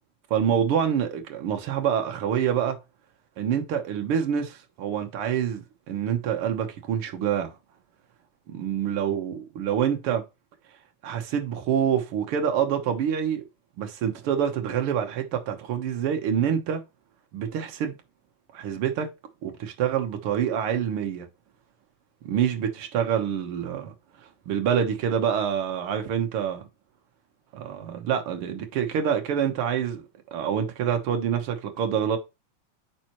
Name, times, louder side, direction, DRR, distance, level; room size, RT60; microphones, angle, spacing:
voice 1, 0.3-2.8 3.4-7.5 8.5-10.2 11.0-13.4 13.8-16.8 17.3-17.9 18.5-19.1 19.4-21.3 22.2-23.9 24.5-26.7 27.5-30.0 30.3-32.2, right 8 dB, 60° right, 1.6 m, -26 dB
9.0 x 4.2 x 3.0 m
omnidirectional pair, 3.5 m